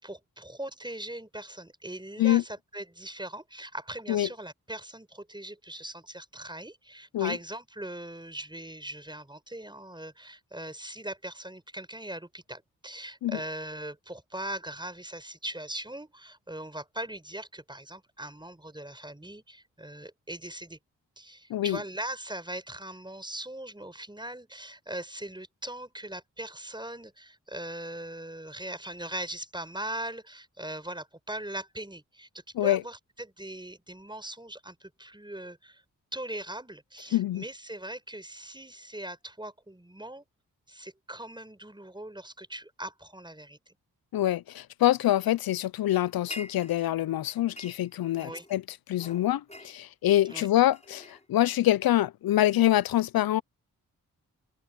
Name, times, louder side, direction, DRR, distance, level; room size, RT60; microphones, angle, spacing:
voice 1, 0.0-20.8 21.2-32.3 32.6-35.8 36.1-40.2 40.7-43.7 48.2-48.5 50.3-50.5, right 1 dB, 15° right, 6.2 m, -40 dB
voice 2, 37.1-37.4 44.1-48.6 48.9-53.4, left 13 dB, 80° left, 0.7 m, -25 dB
sound 1, 45.9-47.0 47.3-48.6 49.0-51.6, left 1 dB, 20° left, 7.3 m, -47 dB
supercardioid pair, 40°, 35 cm